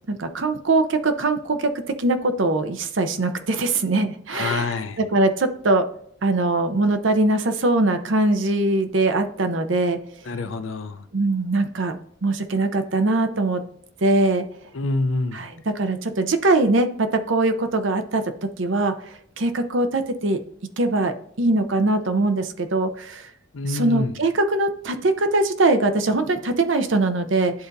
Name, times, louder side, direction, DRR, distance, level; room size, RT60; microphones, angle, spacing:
voice 1, 0.1-5.8 6.2-10.0 11.1-13.6 14.0-14.5 15.3-19.0 19.4-20.4 20.8-23.3 23.7-27.5, right 2 dB, 80° right, 0.7 m, -22 dB
voice 2, 4.3-5.0 10.3-11.0 14.7-15.4 23.5-24.1, left 3 dB, 90° left, 0.6 m, -26 dB
11.5 x 4.0 x 2.6 m
head